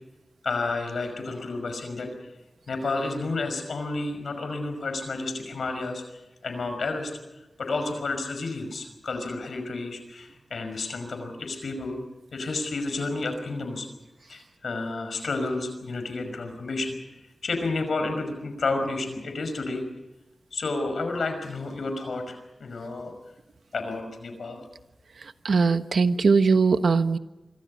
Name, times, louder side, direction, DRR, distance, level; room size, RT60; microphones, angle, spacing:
voice 1, 0.4-2.1 2.7-6.0 6.4-7.1 7.6-12.0 12.3-13.9 14.3-17.0 17.4-19.8 20.5-23.1 23.7-24.6, left 3 dB, 85° left, 7 dB, 5.4 m, -31 dB
voice 2, 25.4-27.2, right 4 dB, 80° right, 9 dB, 1.2 m, -20 dB
26.0 x 25.0 x 5.3 m, 1.0 s
wide cardioid pair, 90°, 0 cm